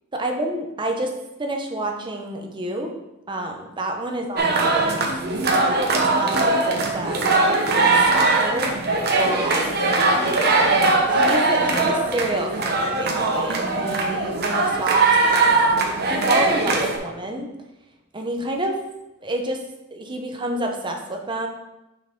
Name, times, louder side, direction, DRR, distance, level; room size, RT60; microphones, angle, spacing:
voice 1, 0.1-2.9 3.3-5.0 5.5-7.4 7.9-9.8 10.0-10.6 11.1-15.1 16.0-17.5 18.1-18.8 19.2-19.6 19.9-21.5, right 1 dB, 20° right, 2 dB, 0.7 m, -29 dB
sound 1, 4.4-17.0, right 3 dB, 50° right, 1.0 m, -20 dB
6.3 x 5.5 x 3.7 m, 0.96 s
head